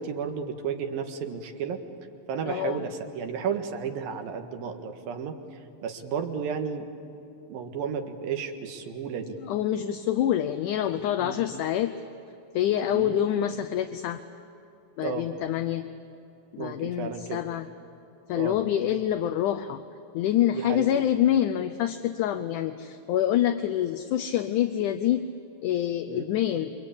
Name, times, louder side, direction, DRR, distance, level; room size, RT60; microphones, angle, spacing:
voice 1, 0.0-1.8 2.3-6.9 7.5-9.4 11.2-11.4 12.9-13.2 15.0-15.3 16.6-17.4 18.3-18.6 20.5-21.0 26.1-26.3, right 6 dB, 90° right, 5 dB, 3.4 m, -33 dB
voice 2, 2.5-2.9 9.4-11.9 12.5-14.2 15.0-15.9 16.5-17.7 18.3-19.8 20.1-25.3 25.6-26.7, left 11 dB, 75° left, 7 dB, 2.1 m, -26 dB
27.5 x 24.0 x 8.7 m, 2.8 s
omnidirectional pair, 4.0 m